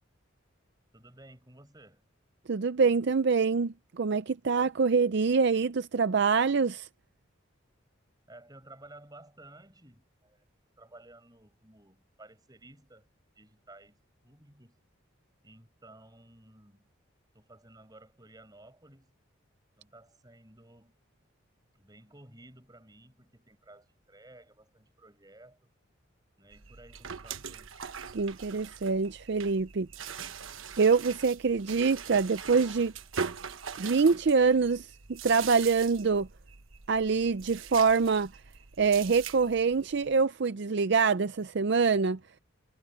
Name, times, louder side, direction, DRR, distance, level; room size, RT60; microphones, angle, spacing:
voice 1, 0.9-2.0 8.3-10.5 10.8-13.1 13.4-14.8 15.4-16.9 17.3-19.1 19.8-21.0 21.7-25.7 26.4-27.8, right 2 dB, 20° right, 6.0 m, -55 dB
voice 2, 2.5-6.9 28.1-29.9 30.8-32.9 33.8-36.3 36.9-38.3 38.8-42.2, right 5 dB, 55° right, 0.5 m, -25 dB
sound 1, 26.5-40.2, right 6 dB, 75° right, 1.2 m, -42 dB
head